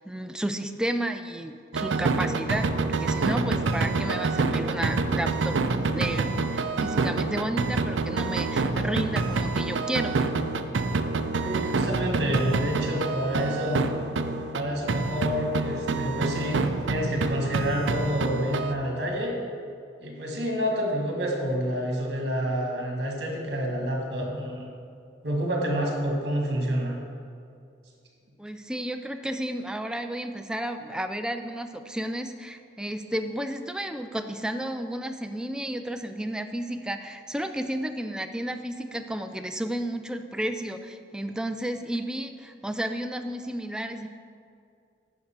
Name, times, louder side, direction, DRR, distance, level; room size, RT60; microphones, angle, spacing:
voice 1, 0.1-10.2 28.4-44.1, right 1 dB, 5° right, 7 dB, 0.3 m, -32 dB
sound 1, 1.7-14.6 14.9-18.7, right 3 dB, 80° right, 0.5 m, -27 dB
voice 2, 11.4-13.8 14.5-19.3 20.0-24.7 25.2-27.0, equal, 60° right, 0 dB, 1.8 m, -28 dB
9.5 x 6.4 x 4.6 m, 2.4 s
head